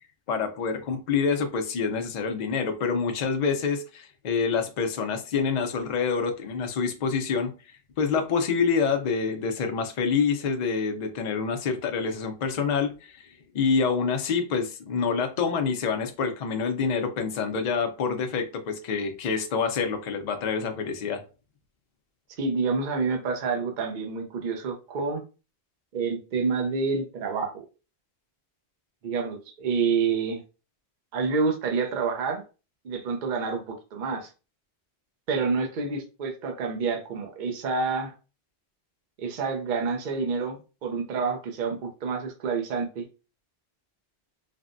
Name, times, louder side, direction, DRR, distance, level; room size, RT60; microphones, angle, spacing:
voice 1, 0.3-7.5 8.0-13.2 13.5-21.2, left 5 dB, 55° left, 0.5 m, -27 dB
voice 2, 22.4-25.2 25.9-27.6 29.0-30.4 31.1-32.4 32.8-34.3 35.3-38.1 39.2-43.1, right 5 dB, 55° right, 0.7 m, -28 dB
3.4 x 2.1 x 2.5 m
omnidirectional pair, 1.1 m